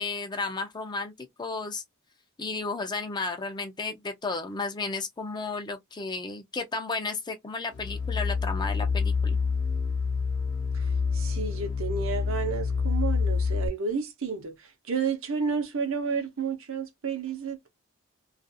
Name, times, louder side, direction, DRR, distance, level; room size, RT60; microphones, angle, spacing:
voice 1, 0.0-1.8 2.4-9.4, left 3 dB, 20° left, 0.4 m, -33 dB
sound 1, 7.7-13.7, left 5 dB, 55° left, 0.7 m, -27 dB
voice 2, 11.1-14.5 14.9-17.7, right 5 dB, 60° right, 0.7 m, -31 dB
2.4 x 2.4 x 2.6 m
head